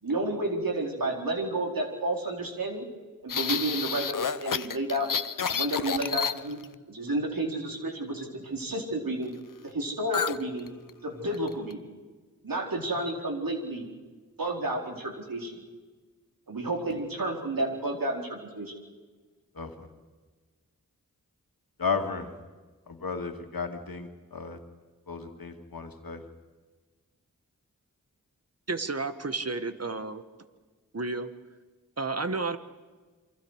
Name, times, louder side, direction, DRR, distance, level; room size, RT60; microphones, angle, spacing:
voice 1, 0.0-2.9 3.2-5.1 5.5-6.6 6.9-9.3 9.6-10.7 11.0-11.9 12.4-13.9 14.4-15.6 16.5-18.7, right 1 dB, 80° right, 1 dB, 4.3 m, -31 dB
sound 1, 3.3-6.7 10.1-10.4 10.7-10.9 11.3-11.7, left 6 dB, 70° left, 0.9 m, -30 dB
voice 2, 19.5-19.9 21.8-22.3 22.9-24.6 25.1-26.2, left 5 dB, 90° left, 5 dB, 2.2 m, -34 dB
voice 3, 28.7-30.2 30.9-31.3 32.0-32.6, right 3 dB, 45° right, 10 dB, 1.7 m, -31 dB
28.0 x 24.5 x 4.9 m, 1.4 s
cardioid pair, 40°, 34 cm